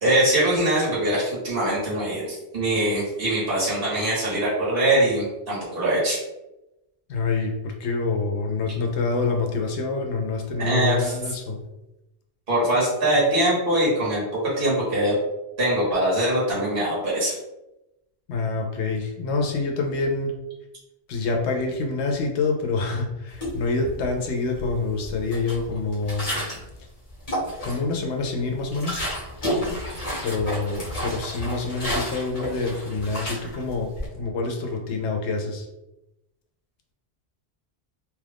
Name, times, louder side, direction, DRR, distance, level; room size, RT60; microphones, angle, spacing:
voice 1, 0.0-6.2 10.6-11.3 12.5-14.2 14.6-15.2 15.6-17.3, right 1 dB, 55° right, -7 dB, 1.6 m, -22 dB
voice 2, 7.1-11.6 18.3-20.3 21.1-26.3 27.6-29.1 30.2-35.7, left 3 dB, 80° left, 2 dB, 0.9 m, -26 dB
sound 1, 23.3-24.2 24.5-26.7 27.1-28.0 28.4-34.1, equal, 35° left, 1.1 m, -31 dB
3.0 x 2.4 x 3.4 m, 0.95 s
omnidirectional pair, 1.1 m